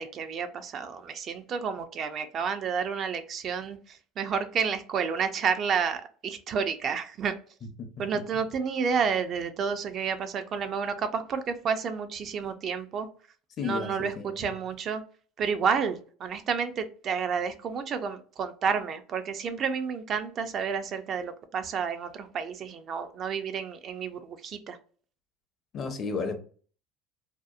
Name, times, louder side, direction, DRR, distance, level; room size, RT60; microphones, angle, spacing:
voice 1, 0.0-7.3 8.0-13.1 13.6-15.0 15.4-24.8, right 6 dB, 45° right, 0.4 m, -30 dB
voice 2, 13.6-14.5 25.7-26.4, left 5 dB, 45° left, 0.6 m, -33 dB
2.8 x 2.0 x 2.3 m
supercardioid pair, 110°, 0 cm